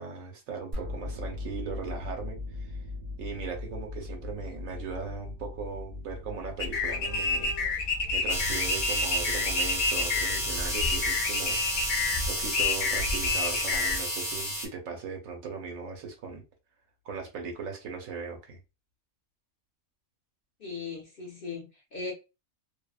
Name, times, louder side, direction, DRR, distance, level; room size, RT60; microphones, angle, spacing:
voice 1, 0.0-2.8 3.2-16.4 17.0-18.6, right 5 dB, 75° right, 1.1 m, -39 dB
sound 1, 0.7-11.7, left 3 dB, 55° right, 0.4 m, -40 dB
sound 2, 6.6-14.0, left 3 dB, 85° left, 0.4 m, -29 dB
sound 3, 8.3-14.7, equal, 5° right, 0.6 m, -31 dB
voice 2, 20.6-22.1, left 4 dB, 50° left, 0.8 m, -38 dB
2.7 x 2.1 x 2.3 m
omnidirectional pair, 1.4 m